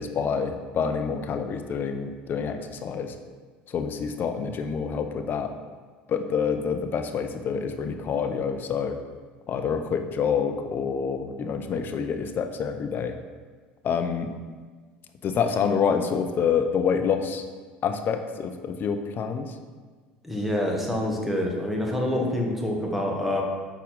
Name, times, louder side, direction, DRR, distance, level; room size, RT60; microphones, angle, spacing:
voice 1, 0.0-3.1 3.7-5.5 6.1-9.0 9.5-13.1 13.8-14.3 15.2-17.4 17.8-19.6, left 6 dB, 45° left, 6 dB, 0.6 m, -27 dB
voice 2, 20.2-23.4, left 1 dB, 5° right, -1 dB, 1.4 m, -26 dB
6.1 x 4.2 x 3.9 m, 1.5 s
hypercardioid pair, 75°, 5 cm